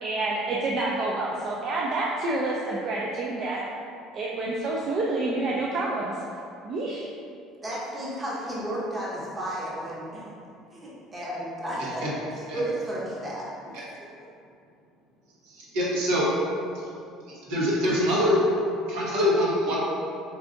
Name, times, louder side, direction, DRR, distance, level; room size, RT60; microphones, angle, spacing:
voice 1, 0.0-3.6 4.1-6.1 6.6-7.0, right 2 dB, 40° right, -3 dB, 0.3 m, -28 dB
voice 2, 7.6-10.3 10.7-12.0 12.3-13.8 14.2-14.3, right 1 dB, 20° right, -6 dB, 0.7 m, -33 dB
voice 3, 15.6-16.3 17.5-18.4 18.9-19.8, left 1 dB, 85° right, -6 dB, 1.0 m, -24 dB
4.6 x 2.5 x 2.5 m, 2.5 s
cardioid pair, 140°, 0 cm